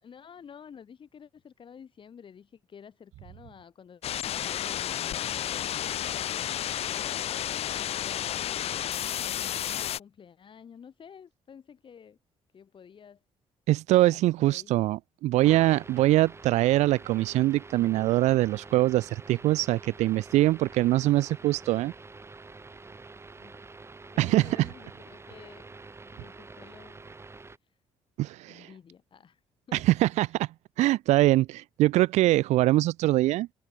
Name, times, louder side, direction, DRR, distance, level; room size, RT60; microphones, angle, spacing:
voice 1, 0.0-6.2 6.5-12.2 12.5-13.2 14.1-14.7 23.4-23.6 24.0-25.7 26.0-27.1 28.5-29.4 29.7-29.8, left 7 dB, 45° left, 3.6 m, -51 dB
sound 1, 4.0-10.0, left 11 dB, 65° left, 0.9 m, -31 dB
voice 2, 13.7-21.9 24.2-24.7 28.2-28.7 29.7-30.5 30.8-33.5, right 16 dB, 85° right, 0.9 m, -23 dB
sound 2, 15.4-27.6, right 3 dB, 20° right, 4.6 m, -47 dB
cardioid pair, 95°, 11 cm